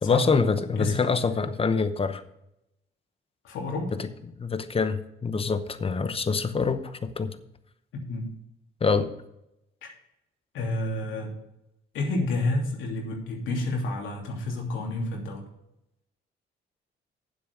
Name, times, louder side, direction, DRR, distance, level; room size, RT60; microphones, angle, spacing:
voice 1, 0.0-2.2 4.0-4.1 4.4-7.4 8.8-9.1, left 5 dB, 30° left, 11 dB, 1.0 m, -25 dB
voice 2, 3.4-3.9 7.9-8.3 9.8-9.9 10.5-11.3 11.9-15.5, left 2 dB, 80° left, -1 dB, 2.9 m, -29 dB
9.5 x 7.7 x 5.3 m, 0.85 s
cardioid pair, 90°, 20 cm